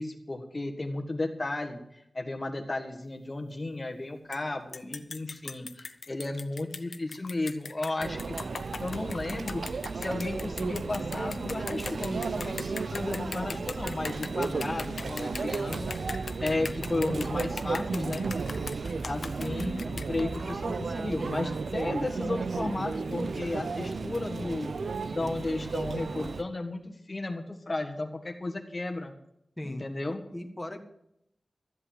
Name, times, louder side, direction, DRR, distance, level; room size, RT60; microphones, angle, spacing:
voice 1, 0.0-8.4 8.8-18.3 19.0-24.7 25.1-29.1 29.6-30.2, left 2 dB, 40° left, 4 dB, 1.5 m, -34 dB
sound 1, 4.3-4.4 4.7-20.6, left 4 dB, 75° left, 0.8 m, -40 dB
Conversation / Chatter / Crowd, 8.0-26.4, right 4 dB, 80° right, 0.6 m, -34 dB
voice 2, 23.9-24.2 29.6-29.8 30.3-30.8, left 1 dB, 15° left, 4 dB, 1.5 m, -39 dB
13.5 x 7.9 x 7.6 m, 0.78 s
wide cardioid pair, 65°, 0 cm